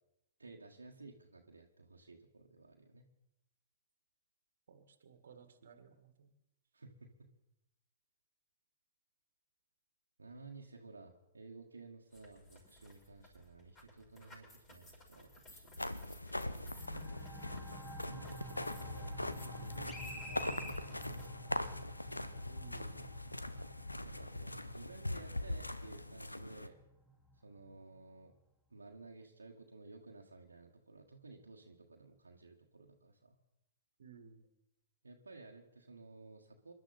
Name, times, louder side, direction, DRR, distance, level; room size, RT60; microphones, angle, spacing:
voice 1, 0.4-3.0 6.7-7.3 10.2-15.8 18.8-21.7 24.0-26.8 27.4-28.3 28.7-33.4 35.0-36.7, right 3 dB, 80° right, 0 dB, 1.6 m, -55 dB
voice 2, 4.7-6.3 22.5-23.0 34.0-34.5, right 6 dB, 65° right, 9 dB, 1.8 m, -57 dB
sound 1, 12.1-21.3, equal, 25° left, 6.5 m, -53 dB
sound 2, 15.8-26.7, left 1 dB, 90° left, 0.8 m, -41 dB
sound 3, 16.7-28.0, left 1 dB, 10° left, 2.1 m, -53 dB
27.0 x 12.0 x 4.3 m, 0.89 s
figure-of-eight pair, 110°, 0 cm